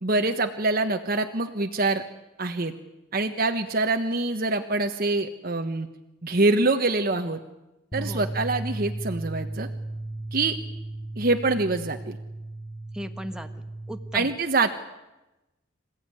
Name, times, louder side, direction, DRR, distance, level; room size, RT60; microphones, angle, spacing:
voice 1, 0.0-2.0 2.4-2.7 3.1-5.9 6.2-7.4 7.9-9.7 10.3-10.5 11.2-12.2 14.1-14.7, right 2 dB, 50° right, 5 dB, 1.3 m, -25 dB
sound 1, 7.9-14.2, right 2 dB, 20° left, 1.5 m, -35 dB
voice 2, 8.0-8.4 12.9-14.3, equal, 5° right, 6 dB, 1.4 m, -38 dB
27.5 x 16.0 x 9.8 m, 1.0 s
head